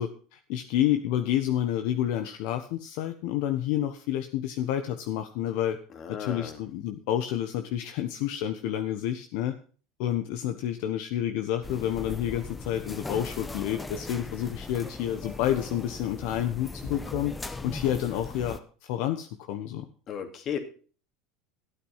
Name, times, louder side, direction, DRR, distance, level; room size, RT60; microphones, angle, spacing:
voice 1, 0.0-5.8 6.1-9.6 10.0-17.4 17.6-19.9, left 11 dB, 70° left, 7 dB, 1.1 m, -29 dB
voice 2, 5.9-6.6 20.1-20.6, left 8 dB, 40° left, 7 dB, 2.5 m, -35 dB
sound 1, 11.6-18.6, left 3 dB, 15° left, 1.1 m, -39 dB
13.5 x 8.8 x 5.7 m, 0.40 s
supercardioid pair, 120°, 0 cm